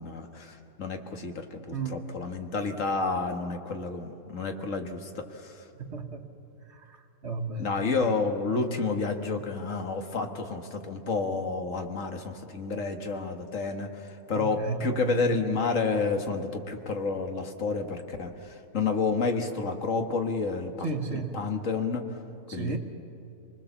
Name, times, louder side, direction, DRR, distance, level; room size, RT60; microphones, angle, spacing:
voice 1, 0.0-5.6 7.6-22.0 22.5-22.8, left 4 dB, 60° left, 5 dB, 1.9 m, -30 dB
voice 2, 5.8-6.2 6.7-7.8 14.3-15.6 20.8-21.4 22.5-22.8, right 4 dB, 50° right, 4 dB, 1.6 m, -34 dB
26.5 x 20.0 x 7.2 m, 2.9 s
omnidirectional pair, 1.6 m